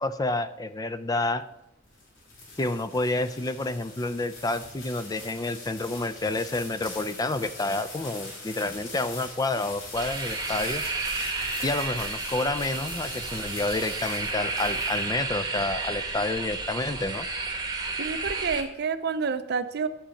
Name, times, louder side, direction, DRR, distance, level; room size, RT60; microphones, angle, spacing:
voice 1, 0.0-1.4 2.6-10.8 11.6-17.3, left 2 dB, 20° left, 13 dB, 0.4 m, -29 dB
sound 1, 1.6-15.4, left 2 dB, 80° left, 3.6 m, -42 dB
sound 2, 9.9-18.6, right 3 dB, 20° right, 1.0 m, -32 dB
voice 2, 18.0-19.9, right 5 dB, 55° right, 11 dB, 0.5 m, -29 dB
10.0 x 5.0 x 7.1 m, 0.88 s
head